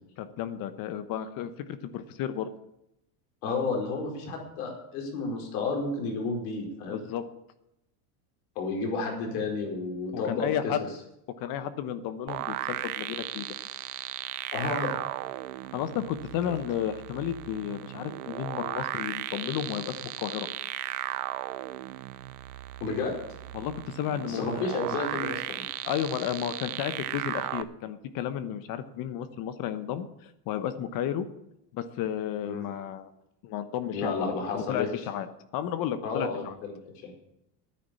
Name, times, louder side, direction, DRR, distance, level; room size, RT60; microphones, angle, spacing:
voice 1, 0.2-2.5 6.9-7.2 10.1-10.8 11.4-13.4 15.7-20.5 23.5-24.5 25.8-31.3 31.7-33.1 33.4-35.3 35.5-36.6, left 10 dB, 50° left, 11 dB, 1.1 m, -33 dB
voice 2, 3.4-7.0 8.5-10.7 14.5-14.9 22.8-23.1 24.3-25.6 32.4-32.7 33.9-34.9 36.0-36.7 37.0-37.1, left 3 dB, 75° left, 1 dB, 4.9 m, -31 dB
sound 1, 12.3-27.6, right 16 dB, 85° right, 0.8 m, -36 dB
9.9 x 9.9 x 8.4 m, 0.83 s
supercardioid pair, 135°, 44 cm